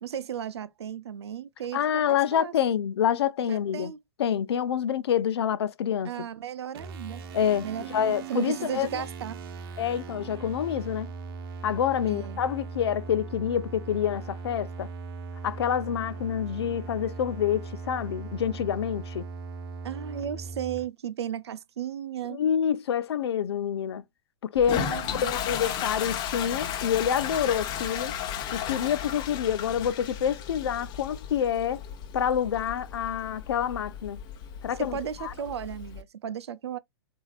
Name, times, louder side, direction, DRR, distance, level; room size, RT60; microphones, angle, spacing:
voice 1, 0.0-2.5 3.5-4.0 6.0-7.2 7.6-9.4 12.0-12.4 19.8-22.4 24.7-25.3 34.8-36.8, right 9 dB, 75° right, 0.6 m, -35 dB
voice 2, 1.7-3.9 4.2-6.1 7.3-9.0 9.8-11.1 11.6-14.9 15.4-19.3 22.3-24.0 24.4-24.8 25.1-28.1 28.5-31.8 32.1-34.2 34.6-35.3, left 9 dB, 70° left, 0.6 m, -27 dB
sound 1, 6.7-20.9, right 4 dB, 55° right, 1.0 m, -39 dB
Toilet flush, 24.5-36.0, left 9 dB, 30° left, 0.9 m, -35 dB
7.1 x 2.8 x 2.4 m
hypercardioid pair, 125°, 14 cm